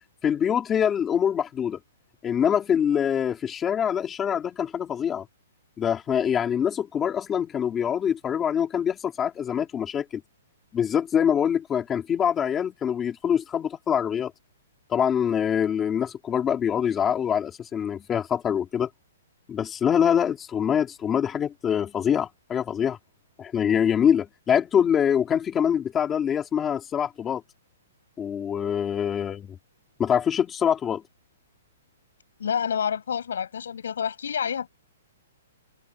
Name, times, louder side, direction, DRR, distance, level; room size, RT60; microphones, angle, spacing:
voice 1, 0.2-1.8 2.2-5.2 5.8-10.2 10.7-14.3 14.9-18.9 19.5-23.0 23.4-27.4 28.2-29.6 30.0-31.0, left 8 dB, 10° left, 3.4 m, -24 dB
voice 2, 32.4-34.7, left 7 dB, 70° left, 6.5 m, -28 dB
hypercardioid pair, 175°, 0 cm